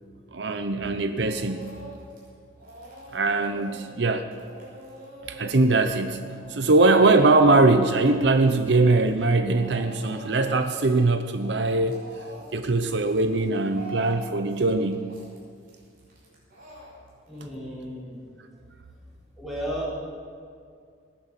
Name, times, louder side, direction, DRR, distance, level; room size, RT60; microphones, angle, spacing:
voice 1, 0.3-1.7 3.1-4.2 5.3-6.2 6.5-12.0 12.5-15.1, right 2 dB, 65° right, 8 dB, 0.8 m, -21 dB
Speech / Crying sobbing, 1.2-2.3 2.6-9.2 9.5-10.9 11.2-17.4, right 1 dB, 50° right, 5.3 m, -45 dB
voice 2, 17.2-18.3 19.4-20.0, right 1 dB, ahead, -8 dB, 5.3 m, -33 dB
18.0 x 10.0 x 7.4 m, 2.3 s
head